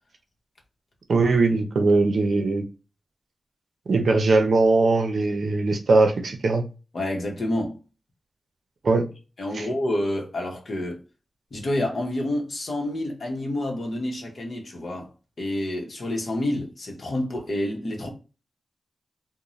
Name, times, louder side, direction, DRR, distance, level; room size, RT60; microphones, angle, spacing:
voice 1, 1.1-2.7 3.9-6.6 8.8-9.0 9.5-9.7, right 3 dB, 70° right, 0.6 m, -20 dB
voice 2, 6.9-7.8 9.4-11.0 11.5-15.1 15.4-18.1, left 1 dB, 50° left, 0.8 m, -28 dB
2.6 x 2.1 x 3.0 m
wide cardioid pair, 130°, 0 cm